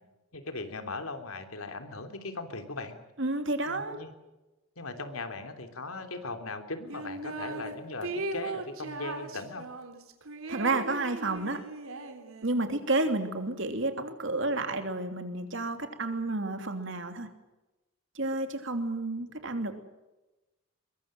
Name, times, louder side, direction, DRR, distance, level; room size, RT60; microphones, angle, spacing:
voice 1, 0.3-3.0 3.7-4.1 4.8-9.7, left 3 dB, 85° left, 7 dB, 3.3 m, -39 dB
voice 2, 3.2-4.0 10.5-11.6 12.4-17.3 18.1-19.7, right 2 dB, 60° right, 7 dB, 3.0 m, -30 dB
sound 1, 6.9-7.7 8.0-12.7, right 2 dB, 80° right, 3.5 m, -38 dB
23.0 x 22.5 x 7.7 m, 1.1 s
head